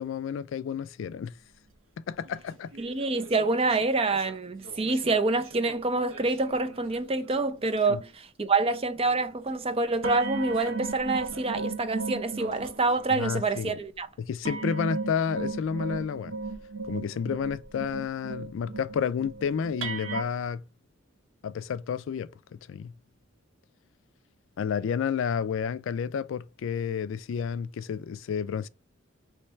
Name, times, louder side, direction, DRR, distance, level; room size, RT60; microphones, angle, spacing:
voice 1, 0.0-1.4 2.1-2.7 7.9-8.0 13.1-13.8 14.2-16.3 16.9-20.6 21.4-22.9 24.6-28.7, left 7 dB, 70° left, 0.3 m, -31 dB
sound 1, 2.2-7.4 7.7-8.1 8.7-9.3 10.0-13.6 14.5-20.2, right 4 dB, 85° right, 1.1 m, -37 dB
voice 2, 2.8-8.0 8.4-14.1, right 3 dB, 30° right, 0.5 m, -26 dB
3.2 x 3.1 x 4.4 m
head